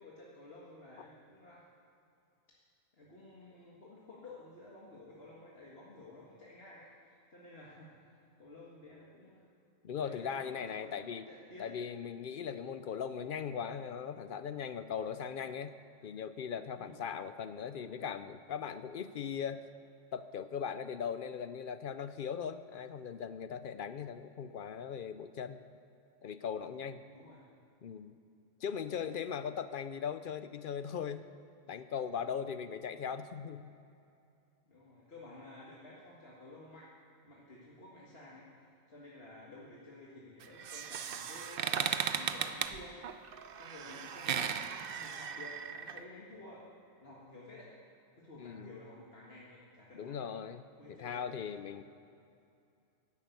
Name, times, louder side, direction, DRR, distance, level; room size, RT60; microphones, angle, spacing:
voice 1, 0.0-1.7 2.9-8.1 8.4-9.4 10.0-11.0 11.3-11.8 16.7-17.0 27.1-27.5 28.9-29.2 32.1-32.5 34.7-36.9 37.2-46.7 47.0-47.7 48.1-50.4 50.8-51.5, left 2 dB, 50° left, -5 dB, 2.0 m, -53 dB
voice 2, 9.8-11.3 11.6-15.7 16.0-19.6 20.1-25.6 26.2-27.0 27.8-28.2 28.6-31.3 31.7-33.7 48.4-48.8 50.0-51.8, left 7 dB, 65° left, 12 dB, 0.5 m, -39 dB
sound 1, 40.4-46.0, right 7 dB, 55° right, 0.7 m, -36 dB
11.5 x 10.5 x 8.3 m, 2.6 s
omnidirectional pair, 1.4 m